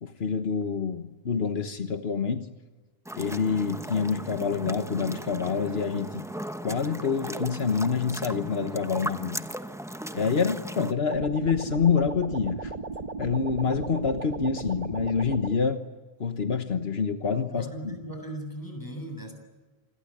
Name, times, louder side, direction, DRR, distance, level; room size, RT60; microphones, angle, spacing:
voice 1, 0.0-2.5 3.1-6.2 6.6-9.4 10.1-12.7 13.2-15.8 16.2-17.9, left 5 dB, 80° left, 8 dB, 1.5 m, -27 dB
sound 1, 3.1-10.9, equal, 5° right, 0.9 m, -37 dB
sound 2, 11.1-15.6, right 3 dB, 45° right, 1.3 m, -36 dB
voice 2, 17.5-19.3, right 1 dB, 20° left, 4 dB, 7.2 m, -38 dB
27.5 x 21.5 x 9.9 m, 1.3 s
omnidirectional pair, 1.0 m